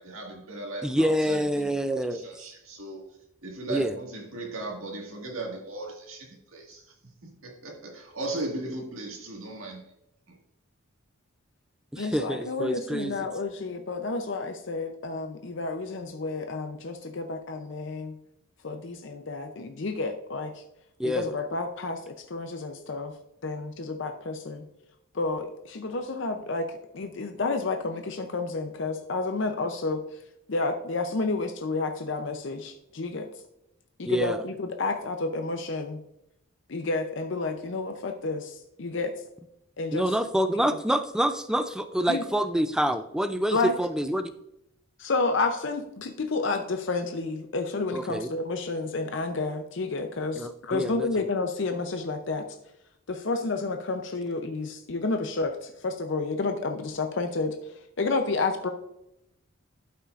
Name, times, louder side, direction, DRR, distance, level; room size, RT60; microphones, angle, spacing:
voice 1, 0.0-1.7 2.1-3.0 3.4-7.0 7.2-9.8 10.3-10.4, right 2 dB, 75° right, 0 dB, 1.8 m, -37 dB
voice 2, 0.8-2.3 3.7-3.9 11.9-13.3 21.0-21.3 34.0-34.4 39.9-44.3 47.9-48.3 50.4-51.3, equal, 5° right, 10 dB, 0.3 m, -27 dB
voice 3, 12.0-18.1 18.6-20.5 21.1-23.1 23.4-24.6 25.1-26.7 26.9-30.0 30.5-33.3 34.0-36.0 36.7-39.1 39.8-40.1 42.1-42.2 43.5-43.7 45.0-52.4 53.1-57.5 58.0-58.7, left 3 dB, 55° left, 6 dB, 0.6 m, -30 dB
12.5 x 5.7 x 2.5 m, 0.83 s
head